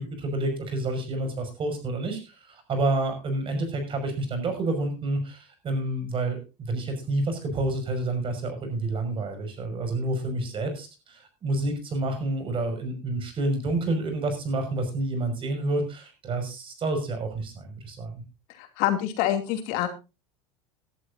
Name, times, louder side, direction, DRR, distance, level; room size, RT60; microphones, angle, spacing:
voice 1, 0.0-18.2, right 2 dB, 35° right, 6 dB, 5.8 m, -29 dB
voice 2, 18.8-19.9, left 12 dB, 70° left, 6 dB, 2.7 m, -25 dB
18.0 x 11.5 x 2.7 m, 0.29 s
supercardioid pair, 115°, 15 cm